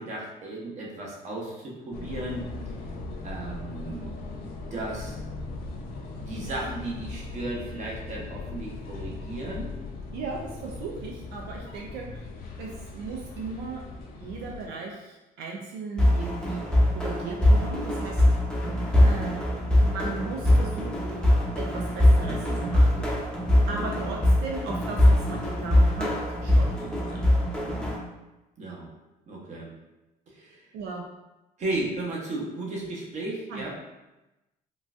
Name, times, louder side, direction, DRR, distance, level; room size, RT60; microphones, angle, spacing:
voice 1, 0.0-2.4 3.2-5.1 6.2-9.7 23.6-24.1 28.6-28.9 29.3-29.7 30.3-30.7 31.6-33.7, right 2 dB, 45° right, -3 dB, 0.9 m, -35 dB
sound 1, 1.9-14.7, left 3 dB, 60° left, 0.5 m, -39 dB
voice 2, 10.1-12.3 12.6-13.8 14.2-16.6 16.9-18.2 18.6-18.8 19.0-19.4 19.8-21.2 21.6-23.1 23.7-26.1 26.4-27.3 30.7-31.0 33.5-33.7, right 4 dB, 85° right, -1 dB, 0.4 m, -37 dB
sound 2, 16.0-28.0, left 1 dB, 5° left, 0.6 m, -22 dB
3.8 x 2.3 x 2.4 m, 1.0 s
cardioid pair, 110°, 17 cm